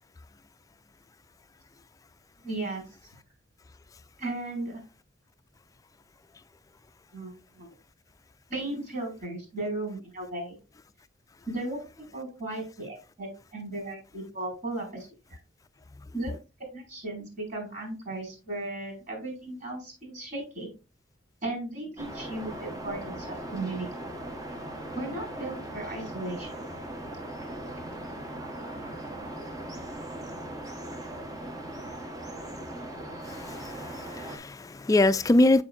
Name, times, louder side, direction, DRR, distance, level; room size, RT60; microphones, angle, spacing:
voice 1, 2.4-2.8 4.2-4.8 7.1-7.7 8.5-10.6 11.5-15.1 16.1-16.3 16.7-20.7 21.4-23.9 24.9-26.6, right 2 dB, 45° right, 4.7 m, -36 dB
sound 1, 22.0-34.4, right 1 dB, 20° right, 1.0 m, -39 dB
voice 2, 33.3-35.6, left 2 dB, 20° left, 0.3 m, -24 dB
7.7 x 7.0 x 2.4 m
head